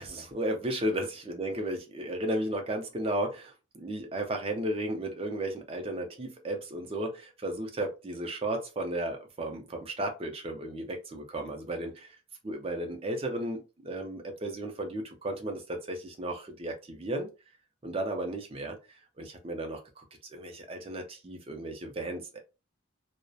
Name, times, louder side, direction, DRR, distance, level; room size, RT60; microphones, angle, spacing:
voice 1, 0.0-12.2 12.4-17.3 17.8-20.0 20.3-22.4, right 1 dB, 30° right, 4 dB, 0.4 m, -34 dB
2.6 x 2.0 x 2.3 m, 0.29 s
head